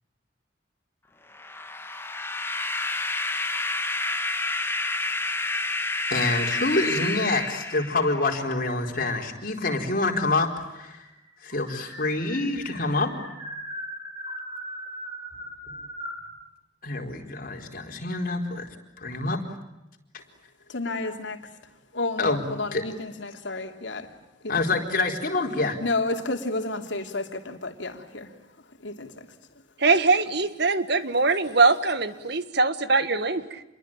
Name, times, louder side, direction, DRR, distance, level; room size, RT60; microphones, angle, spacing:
sound 1, 1.3-8.3, left 2 dB, 15° left, 1.7 m, -29 dB
voice 1, 6.1-11.0 11.4-13.2 16.8-18.7 19.0-19.4 22.2-22.4 22.7-22.8 24.5-25.8, left 2 dB, 50° left, 2 dB, 4.4 m, -26 dB
sound 2, 6.4-7.6 8.1-8.8 9.8-9.9 10.1-10.2 10.6-16.3, equal, 25° right, 7.9 m, -40 dB
voice 2, 20.7-21.4 21.9-24.1 24.4-24.7 25.8-28.3 28.8-29.3, left 2 dB, 75° left, 5 dB, 3.0 m, -31 dB
voice 3, 29.8-33.6, right 3 dB, 60° right, 12 dB, 1.7 m, -22 dB
28.5 x 23.0 x 8.9 m, 0.94 s
head